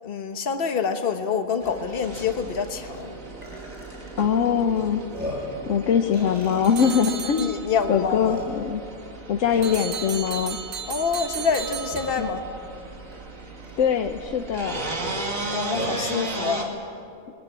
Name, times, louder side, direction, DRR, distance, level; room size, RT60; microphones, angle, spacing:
voice 1, 0.0-3.1 7.3-8.4 10.9-12.4 15.5-16.8, left 6 dB, 45° left, 7 dB, 1.4 m, -26 dB
Burping eructation, 1.6-1.7 2.1-2.3 2.9-3.0 3.4-4.1 4.7-4.8 5.1-5.6 6.1-7.1 7.8-7.9 8.2-8.8 9.5-9.9 11.4-12.3 13.1-13.2 13.6-13.7 14.7-16.0, left 1 dB, 30° right, 7.1 m, -36 dB
sound 1, 1.6-16.6, right 3 dB, 70° right, 2.6 m, -37 dB
voice 2, 4.2-5.0 5.7-7.6 7.9-8.8 9.3-10.6 12.2-12.3 13.8-14.8, left 7 dB, 65° left, 5 dB, 1.1 m, -22 dB
sound 2, 6.6-8.0 9.6-12.6, right 7 dB, 45° right, 1.0 m, -35 dB
21.0 x 18.0 x 9.6 m, 2.6 s
omnidirectional pair, 1.5 m